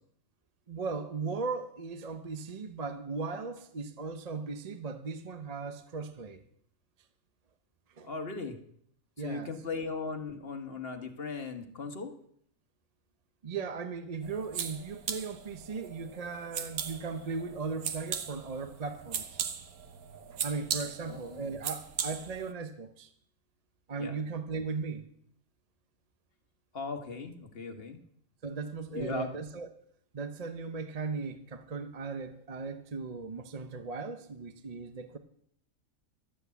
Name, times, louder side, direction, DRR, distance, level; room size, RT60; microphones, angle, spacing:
voice 1, 0.7-6.4 8.0-8.1 9.2-9.6 13.4-19.4 20.4-23.1 23.9-25.1 28.4-29.7 30.1-35.2, right 4 dB, 35° right, 0.6 m, -37 dB
voice 2, 8.0-8.6 9.2-12.1 21.0-21.6 24.0-24.1 26.7-28.0 28.9-29.3, left 4 dB, 45° left, 1.4 m, -38 dB
sound 1, 14.2-22.5, right 7 dB, 80° right, 1.4 m, -39 dB
12.5 x 8.0 x 8.1 m
omnidirectional pair, 1.5 m